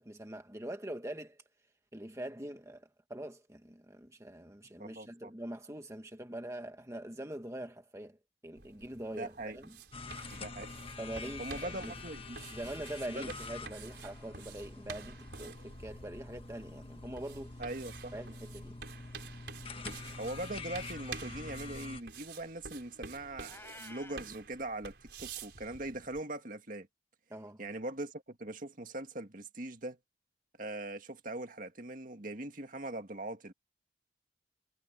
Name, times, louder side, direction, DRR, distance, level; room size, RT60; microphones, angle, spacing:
voice 1, 0.0-1.4 1.9-9.8 11.0-11.9 12.5-17.6 18.1-18.8 27.3-27.6, right 1 dB, 15° right, 1.3 m, -43 dB
voice 2, 4.8-5.3 9.2-9.6 10.3-10.7 11.4-12.4 13.1-13.3 17.6-18.1 20.2-26.9 27.6-30.0 30.6-33.5, right 1 dB, 50° right, 2.0 m, -41 dB
sound 1, 8.6-26.2, right 5 dB, 65° right, 4.8 m, -50 dB
sound 2, 9.9-22.0, left 3 dB, 30° left, 1.3 m, -46 dB
Meow, 23.4-24.3, left 2 dB, 15° left, 4.6 m, -50 dB
head